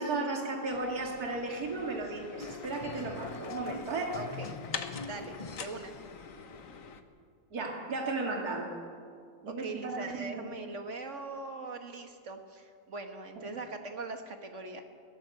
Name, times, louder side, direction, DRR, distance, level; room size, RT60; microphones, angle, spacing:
voice 1, 0.0-4.2 7.5-8.7 9.4-10.5, right 3 dB, 75° right, 1 dB, 2.7 m, -35 dB
sound 1, 0.7-7.0, left 6 dB, 60° left, 1.5 m, -45 dB
sound 2, 2.4-6.9, left 5 dB, 40° left, 0.5 m, -43 dB
voice 2, 4.1-4.5 5.1-5.9 9.5-14.8, right 3 dB, 50° right, 5 dB, 2.0 m, -41 dB
21.5 x 17.0 x 7.8 m, 2.2 s
omnidirectional pair, 1.6 m